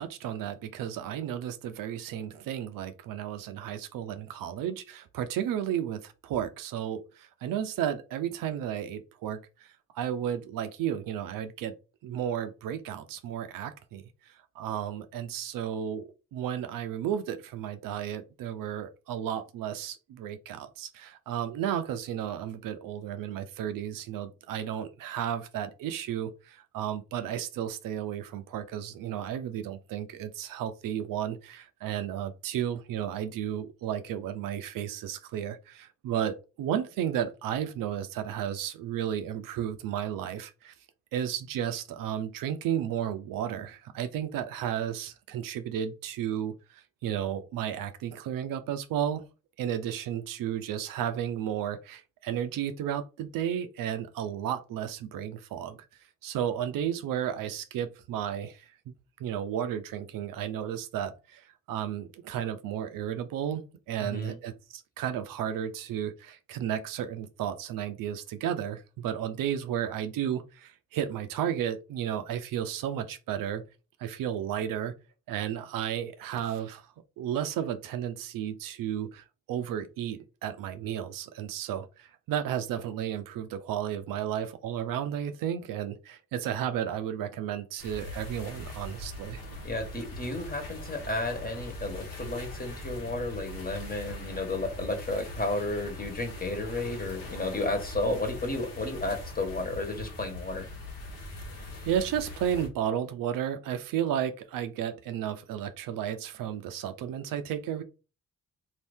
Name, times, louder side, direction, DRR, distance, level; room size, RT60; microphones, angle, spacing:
voice 1, 0.0-11.7 12.0-40.7 41.1-49.2 49.6-55.9 56.2-58.9 59.2-73.6 74.0-74.9 75.3-76.9 77.2-89.4 101.9-107.8, right 10 dB, 75° right, 0.5 m, -33 dB
voice 2, 64.0-64.4 89.6-100.6, left 2 dB, 25° left, 1.2 m, -32 dB
sound 1, 87.8-102.7, left 1 dB, 90° left, 1.1 m, -41 dB
2.7 x 2.7 x 3.4 m
supercardioid pair, 60°, 33 cm